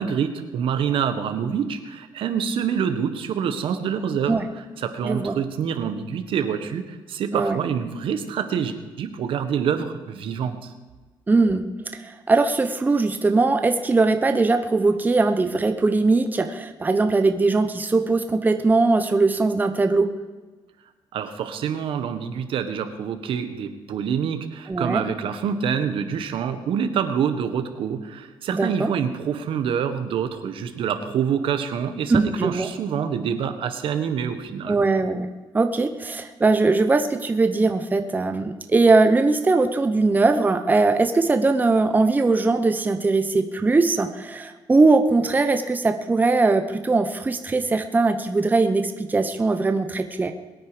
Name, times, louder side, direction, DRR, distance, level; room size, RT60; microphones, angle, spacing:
voice 1, 0.0-10.7 21.1-34.8, right 7 dB, 70° right, 9 dB, 1.4 m, -26 dB
voice 2, 5.0-5.3 7.3-7.6 11.3-11.6 11.9-20.1 24.7-25.0 28.6-28.9 32.1-32.7 34.7-35.3 35.5-50.3, right 3 dB, 20° right, 7 dB, 0.9 m, -20 dB
22.0 x 9.5 x 5.1 m, 1.3 s
cardioid pair, 120°, 9 cm